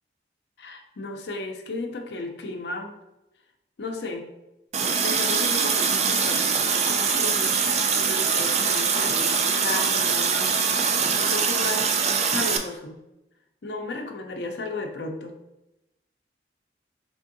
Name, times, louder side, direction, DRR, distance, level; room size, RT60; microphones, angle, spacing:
voice 1, 0.6-2.9 3.8-4.3 5.0-7.6 8.0-10.6 10.9-11.9 12.2-13.0 13.6-15.3, left 2 dB, 75° left, 4 dB, 0.5 m, -34 dB
Water tap faucet, 4.7-12.6, right 6 dB, 40° right, 0.3 m, -23 dB
3.7 x 3.5 x 2.6 m, 0.91 s
head